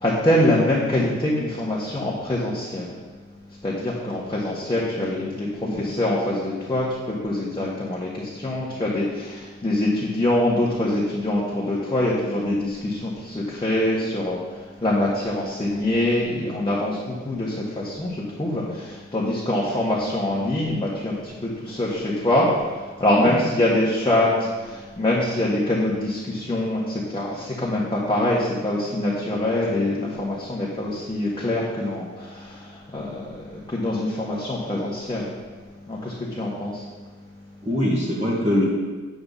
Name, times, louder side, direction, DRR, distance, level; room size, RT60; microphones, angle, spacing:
voice 1, 0.0-2.9 3.6-33.4 33.7-35.3 35.9-36.8, left 1 dB, 15° left, -6 dB, 1.7 m, -24 dB
voice 2, 37.7-38.6, left 1 dB, 25° right, -7 dB, 2.2 m, -23 dB
8.6 x 7.9 x 4.2 m, 1.3 s
wide cardioid pair, 100°, 30 cm